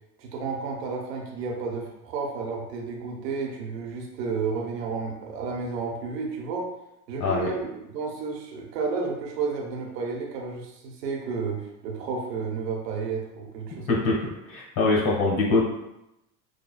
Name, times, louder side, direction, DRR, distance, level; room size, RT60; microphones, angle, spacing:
voice 1, 0.2-6.7 7.1-14.2, right 4 dB, 80° right, -1 dB, 1.0 m, -32 dB
voice 2, 14.5-15.6, left 3 dB, 45° left, -4 dB, 1.4 m, -23 dB
6.5 x 2.2 x 2.3 m, 0.87 s
hypercardioid pair, 85°, 49 cm